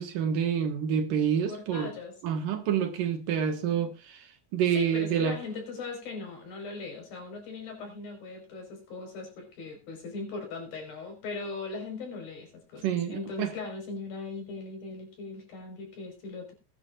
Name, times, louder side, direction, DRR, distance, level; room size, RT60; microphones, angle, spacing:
voice 1, 0.0-1.9 2.2-4.3 4.5-5.4 12.8-13.5, right 8 dB, 65° right, 3.0 m, -28 dB
voice 2, 1.5-2.2 4.7-16.5, left 3 dB, 65° left, 6.7 m, -39 dB
20.5 x 11.0 x 2.5 m
omnidirectional pair, 4.4 m